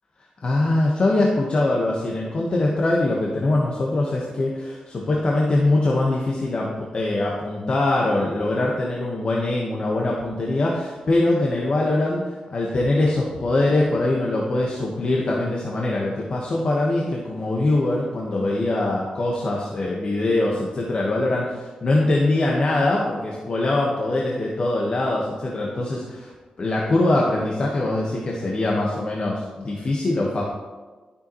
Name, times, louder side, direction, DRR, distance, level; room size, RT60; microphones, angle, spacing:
voice 1, 0.4-26.2 26.6-30.4, left 2 dB, 50° left, -3 dB, 1.3 m, -22 dB
12.5 x 6.9 x 3.1 m, 1.3 s
wide cardioid pair, 100°, 2 cm